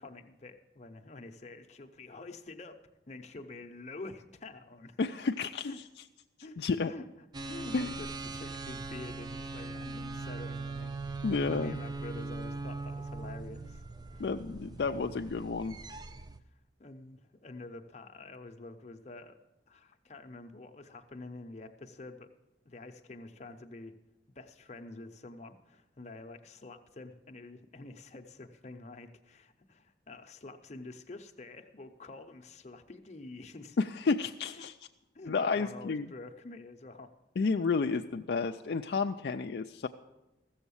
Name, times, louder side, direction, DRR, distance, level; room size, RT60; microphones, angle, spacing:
voice 1, 0.0-2.8 3.1-5.0 5.6-5.8 6.4-6.6 6.9-7.1 7.5-13.8 14.1-14.2 16.8-19.4 19.7-22.3 22.6-24.0 24.3-33.8 34.6-34.7 35.1-37.1, left 2 dB, 40° left, 5 dB, 0.8 m, -47 dB
voice 2, 5.0-5.7 6.6-6.9 7.7-7.9 11.2-11.8 14.2-15.8 34.1-34.7 35.3-36.1 37.4-39.9, left 4 dB, 65° left, 5 dB, 0.4 m, -31 dB
sound 1, 7.3-16.4, right 3 dB, 25° right, 0.4 m, -40 dB
15.0 x 7.2 x 7.0 m, 0.98 s
head